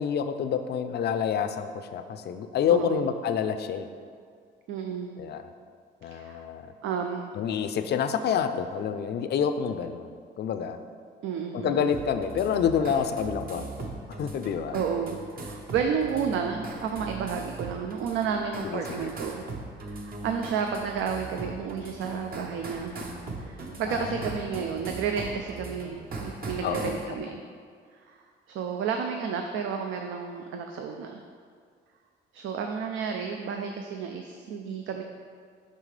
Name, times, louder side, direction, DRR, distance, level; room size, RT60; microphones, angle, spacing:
voice 1, 0.0-3.9 5.2-5.4 6.0-6.7 7.3-10.8 11.5-13.9 14.2-14.8 18.6-19.1 23.9-24.2 26.6-26.9, left 7 dB, 55° left, 9 dB, 0.4 m, -28 dB
voice 2, 2.7-3.0 4.7-5.2 6.1-6.4 6.8-7.3 11.2-12.0 14.7-19.5 19.8-23.0 23.4-27.5 27.9-28.2 28.5-31.2 32.3-35.0, right 6 dB, 75° right, 4 dB, 0.4 m, -31 dB
sound 1, 11.9-27.1, right 2 dB, 50° right, 0.8 m, -39 dB
5.6 x 5.3 x 3.2 m, 2.1 s
cardioid pair, 90°, 20 cm